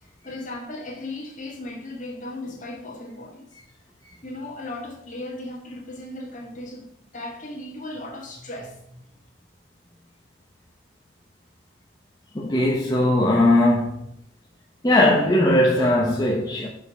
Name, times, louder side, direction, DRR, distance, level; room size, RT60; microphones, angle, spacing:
voice 1, 0.0-3.5 4.2-9.0, left 1 dB, 40° left, 1.8 m, -36 dB
voice 2, 12.3-14.0 14.8-16.7, left 1 dB, 20° left, 0.8 m, -19 dB
6.8 x 5.2 x 4.9 m
head